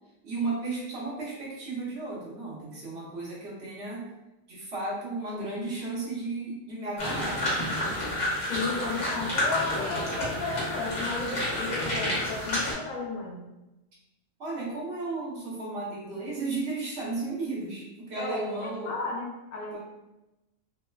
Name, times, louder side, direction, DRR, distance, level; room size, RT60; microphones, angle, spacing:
voice 1, 0.2-4.1 4.5-7.5 14.4-18.9 19.7-19.8, right 3 dB, 60° right, -5 dB, 1.0 m, -34 dB
sound 1, 7.0-12.7, left 1 dB, 70° left, 1.3 m, -30 dB
voice 2, 8.5-13.4 18.1-19.8, left 3 dB, 85° left, -2 dB, 1.1 m, -34 dB
3.1 x 2.1 x 2.2 m, 0.97 s
omnidirectional pair, 1.4 m